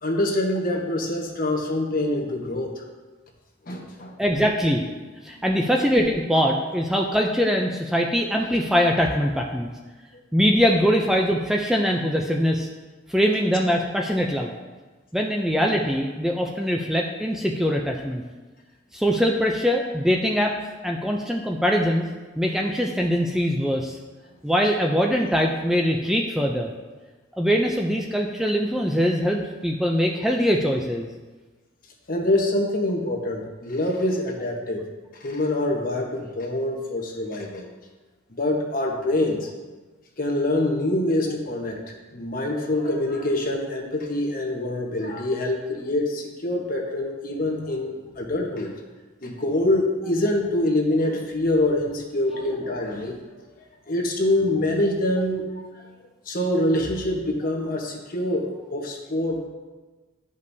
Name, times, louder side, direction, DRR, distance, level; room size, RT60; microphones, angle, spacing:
voice 1, 0.0-2.8 3.7-4.1 5.4-5.5 10.1-10.3 32.1-34.9 35.1-37.7 38.3-39.5 40.2-41.8 42.1-48.7 49.2-53.1 53.9-55.5 56.3-59.5, left 1 dB, 50° left, 0 dB, 1.1 m, -25 dB
voice 2, 4.2-4.8 5.2-9.7 10.3-12.7 13.1-14.5 15.1-18.2 18.9-20.5 20.8-22.1 22.4-24.0 24.4-26.7 27.4-31.1, equal, ahead, 0 dB, 0.4 m, -22 dB
11.0 x 5.2 x 2.7 m, 1.3 s
head